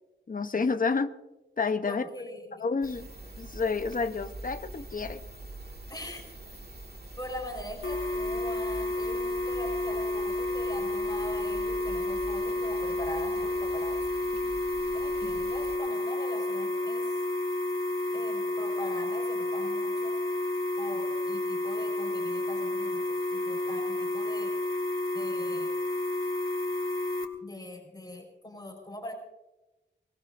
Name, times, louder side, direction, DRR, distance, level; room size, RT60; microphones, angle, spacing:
voice 1, 0.3-1.1 1.6-2.0 2.6-3.1 3.4-5.2, left 4 dB, 45° left, 9 dB, 0.8 m, -29 dB
voice 2, 1.9-2.7 5.9-6.3 7.2-13.9 14.9-17.2 18.1-20.1 20.8-24.5 25.1-25.7 27.4-29.1, left 1 dB, 20° left, 1 dB, 4.6 m, -42 dB
sound 1, 2.8-15.8, right 2 dB, 55° right, 2.0 m, -45 dB
sound 2, 7.8-27.2, left 2 dB, 90° left, 2.2 m, -30 dB
24.5 x 20.0 x 2.6 m, 1.0 s
wide cardioid pair, 95°, 20 cm